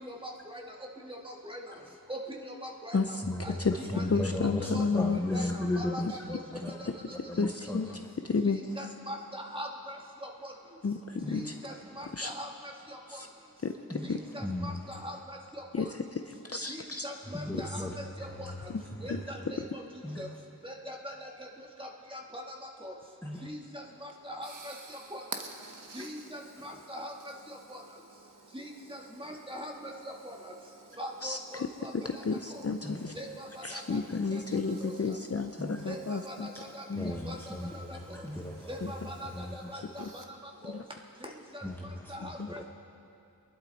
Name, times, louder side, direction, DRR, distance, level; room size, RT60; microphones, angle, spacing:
voice 1, 0.0-0.6 1.0-1.8 2.1-3.2 3.4-4.0 4.4-6.4 6.8-7.2 8.4-10.5 11.3-13.2 14.0-15.9 16.7-18.7 19.0-19.8 20.2-20.3 20.6-21.5 21.8-22.6 22.8-22.9 23.4-25.4 25.9-27.8 28.5-29.9 30.2-30.5 31.0-32.2 32.5-32.7 33.1-34.0 34.3-34.4 34.8-34.9 35.9-38.3 38.7-40.2 40.6-40.8 41.2-41.6 42.1-42.6, equal, 15° right, 0 dB, 1.9 m, -42 dB
voice 2, 3.2-3.6 3.9-6.8 7.3-7.8 11.2-11.4 13.9-14.1 14.4-14.9 17.3-18.6 18.9-19.5 20.0-20.2 23.2-23.5 26.7-26.8 32.8-33.0 35.6-35.8 36.9-38.8 39.2-39.8 41.6-42.1 42.5-42.6, left 1 dB, 5° left, 1 dB, 0.9 m, -36 dB
voice 3, 4.1-5.5 7.4-7.9 8.2-8.6 10.8-11.5 12.1-12.3 13.1-13.3 13.6-14.2 15.7-16.2 16.5-17.1 18.7-18.8 19.1-19.2 31.2-31.7 31.9-33.1 33.6-36.5 36.9-37.1 38.8-38.9 40.0-40.1 40.7-40.8 42.4-42.5, left 4 dB, 40° left, 6 dB, 0.6 m, -31 dB
sound 1, 23.8-41.8, right 3 dB, 55° right, 1.1 m, -52 dB
23.0 x 11.5 x 4.1 m, 2.6 s
wide cardioid pair, 50°, 38 cm